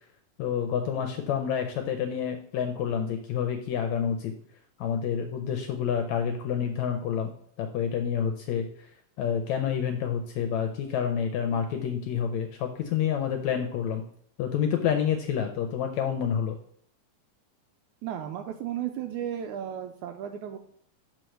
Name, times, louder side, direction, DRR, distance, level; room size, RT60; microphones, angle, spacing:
voice 1, 0.4-4.3 4.8-8.9 9.2-14.0 14.4-16.6, left 8 dB, 80° left, 5 dB, 1.7 m, -28 dB
voice 2, 18.0-20.6, right 10 dB, 80° right, 6 dB, 1.8 m, -34 dB
6.4 x 4.5 x 6.3 m, 0.65 s
omnidirectional pair, 3.8 m